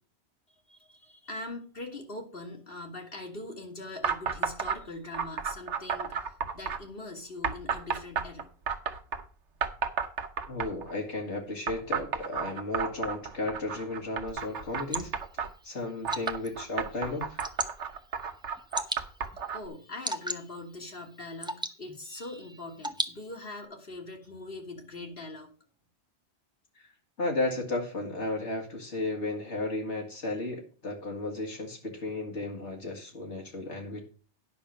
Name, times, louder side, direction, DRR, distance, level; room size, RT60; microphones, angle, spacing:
voice 1, 0.7-8.5 19.2-25.5, left 2 dB, 55° left, 2 dB, 1.7 m, -42 dB
sound 1, 4.0-4.8 5.1-6.8 7.4-9.2 9.6-10.9 11.7-15.5 16.0-19.7, right 6 dB, 85° right, 1.2 m, -32 dB
voice 2, 10.5-15.1 15.6-17.4 26.8-26.9 27.2-34.1, left 2 dB, 80° left, 1 dB, 2.5 m, -34 dB
Water / Drip, 14.3-23.7, right 1 dB, 5° right, 0.6 m, -40 dB
9.7 x 5.8 x 6.5 m, 0.37 s
omnidirectional pair, 1.2 m